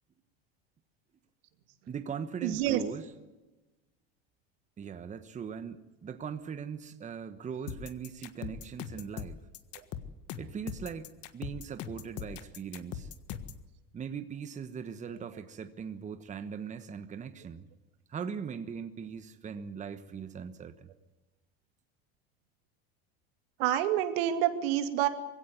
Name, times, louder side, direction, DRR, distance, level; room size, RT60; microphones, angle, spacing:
voice 1, 1.9-3.1 4.8-9.4 10.4-13.1 13.9-17.7 18.1-20.9, right 7 dB, 25° right, 1.3 m, -40 dB
voice 2, 2.4-2.8 9.7-9.8 12.2-12.3 23.6-25.1, right 12 dB, 75° right, 2.5 m, -28 dB
sound 1, 7.7-13.7, left 9 dB, 50° left, 1.6 m, -41 dB
22.0 x 16.5 x 9.6 m
supercardioid pair, 125°, 30 cm